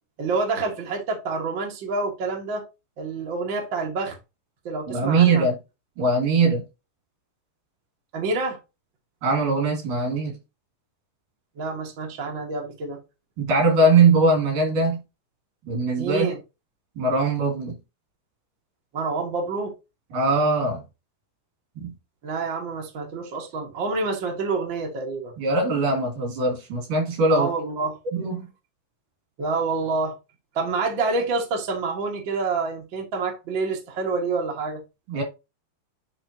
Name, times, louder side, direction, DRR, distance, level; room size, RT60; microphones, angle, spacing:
voice 1, 0.2-2.6 3.0-4.2 4.6-5.5 8.1-8.6 11.6-13.0 16.0-16.4 18.9-19.7 22.2-25.3 27.3-28.0 29.4-30.1 30.5-34.8, right 3 dB, 40° right, 2.0 m, -27 dB
voice 2, 4.9-5.6 6.0-6.6 9.2-10.4 13.4-15.0 15.7-16.3 17.0-17.8 20.1-20.8 21.8-21.9 25.4-27.5 28.1-28.4 35.1-35.2, right 3 dB, 70° right, 4.4 m, -21 dB
10.5 x 3.5 x 2.8 m
omnidirectional pair, 4.0 m